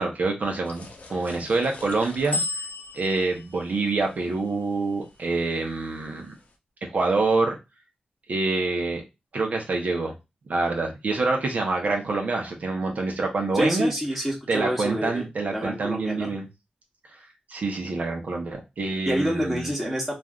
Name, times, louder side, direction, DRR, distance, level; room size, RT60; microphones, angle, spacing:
voice 1, 0.0-2.4 2.9-6.3 6.8-7.5 8.3-9.0 9.3-10.1 10.5-13.9 14.5-16.5 17.5-19.7, right 3 dB, 70° right, 1 dB, 0.8 m, -26 dB
sound 1, 0.6-5.2, left 2 dB, 65° left, 0.6 m, -36 dB
voice 2, 13.5-15.2 15.5-16.3 19.0-20.1, equal, ahead, -4 dB, 1.0 m, -27 dB
3.2 x 2.5 x 2.4 m, 0.24 s
wide cardioid pair, 95°, 3 cm